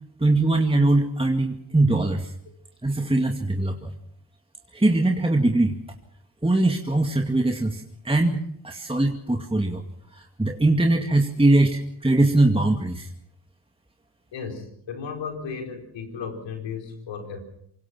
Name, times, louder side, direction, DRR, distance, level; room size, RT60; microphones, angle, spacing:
voice 1, 0.2-2.3 2.8-3.9 4.7-5.8 6.4-8.4 8.6-9.8 10.1-13.1, right 2 dB, 10° right, 3 dB, 2.2 m, -21 dB
voice 2, 14.3-17.4, left 5 dB, 85° left, 4 dB, 4.4 m, -34 dB
25.0 x 22.5 x 6.0 m, 0.70 s
supercardioid pair, 50°, 44 cm